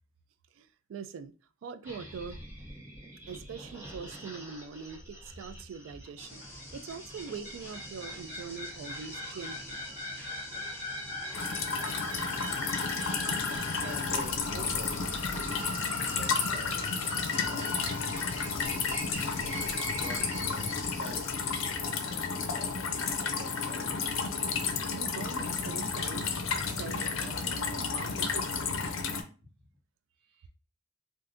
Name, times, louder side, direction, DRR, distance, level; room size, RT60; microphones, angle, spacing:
voice 1, 0.6-1.3 1.6-2.4 3.3-9.8 24.9-28.5, right 6 dB, 70° right, 0.3 m, -43 dB
sound 1, 1.8-20.8, left 1 dB, 15° right, 1.4 m, -40 dB
sound 2, 6.2-21.4, left 1 dB, 10° left, 1.0 m, -47 dB
sound 3, 11.3-29.2, left 5 dB, 85° left, 0.5 m, -32 dB
voice 2, 13.8-15.2 15.5-18.1 18.4-21.6 22.0-22.7 23.1-24.2 30.3-30.4, left 1 dB, 50° right, 1.2 m, -48 dB
3.4 x 2.6 x 2.5 m
head